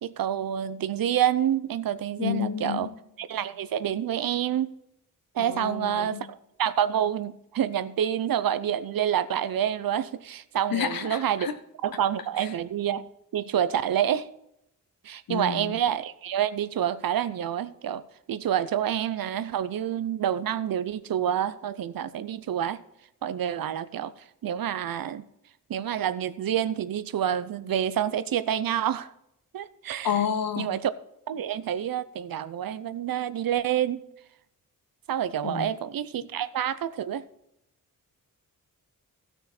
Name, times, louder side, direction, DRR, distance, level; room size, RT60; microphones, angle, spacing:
voice 1, 0.0-2.9 3.2-4.7 5.3-11.5 11.8-13.1 13.3-14.3 15.0-18.0 18.3-22.8 23.2-24.1 24.4-25.2 25.7-29.1 29.5-30.1 30.6-30.9 31.3-34.0 35.1-37.2, right 10 dB, 85° right, 14 dB, 0.7 m, -28 dB
voice 2, 2.2-2.9 5.4-6.2 10.7-11.5 12.4-12.5 15.3-15.8 30.0-30.7 35.4-35.7, left 8 dB, 90° left, 9 dB, 1.3 m, -30 dB
16.0 x 6.3 x 4.3 m, 0.80 s
wide cardioid pair, 140°, 34 cm